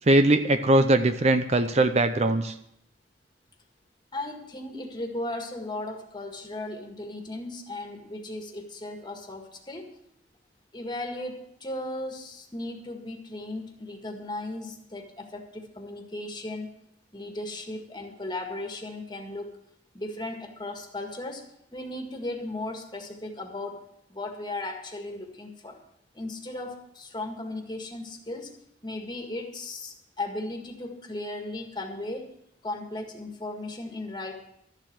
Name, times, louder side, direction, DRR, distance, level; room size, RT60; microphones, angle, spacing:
voice 1, 0.1-2.5, right 2 dB, 35° right, 9 dB, 0.6 m, -21 dB
voice 2, 4.1-9.9 10.7-16.7 17.1-19.6 19.9-21.4 21.7-23.8 24.1-25.8 26.1-28.5 28.8-32.3 32.6-34.4, left 2 dB, 25° left, 3 dB, 1.8 m, -36 dB
13.0 x 7.5 x 7.5 m, 0.76 s
head